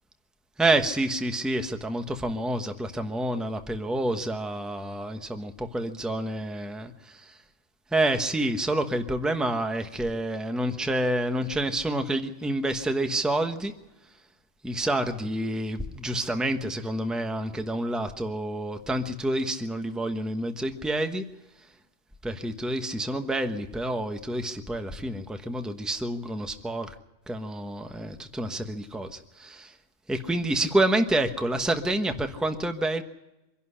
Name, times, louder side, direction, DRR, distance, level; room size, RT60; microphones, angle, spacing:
voice 1, 0.6-7.2 7.9-13.7 14.6-21.2 22.2-26.9 27.3-29.7 30.1-33.0, right 1 dB, ahead, 6 dB, 1.0 m, -28 dB
24.5 x 11.5 x 9.9 m, 0.99 s
omnidirectional pair, 1.3 m